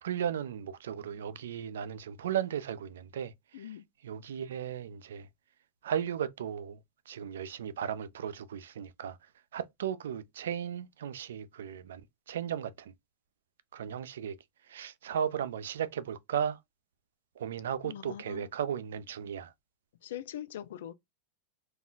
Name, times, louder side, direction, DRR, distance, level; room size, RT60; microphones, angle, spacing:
voice 1, 0.0-3.7 4.0-5.3 5.8-6.8 7.1-9.2 9.5-12.0 12.3-12.9 13.7-14.4 14.7-16.6 17.4-19.5, right 9 dB, 85° right, 0.3 m, -35 dB
voice 2, 3.5-3.9 17.8-18.5 20.0-20.9, left 11 dB, 75° left, 0.3 m, -42 dB
2.4 x 2.1 x 3.7 m
hypercardioid pair, 115°, 0 cm